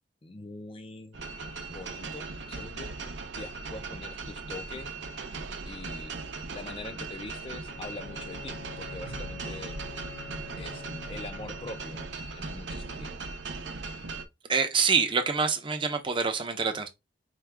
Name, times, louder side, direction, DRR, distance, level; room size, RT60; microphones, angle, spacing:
voice 1, 0.2-1.2 1.7-3.0 3.4-4.9 5.7-6.2 6.5-9.8 10.6-12.0 12.3-13.3, left 2 dB, 30° left, 0.5 m, -43 dB
sound 1, 1.1-14.3, right 3 dB, 75° right, 0.6 m, -38 dB
Bowed string instrument, 7.6-12.5, left 6 dB, 90° left, 0.8 m, -47 dB
voice 2, 14.5-16.9, right 5 dB, 25° right, 0.6 m, -26 dB
4.6 x 2.3 x 3.3 m
head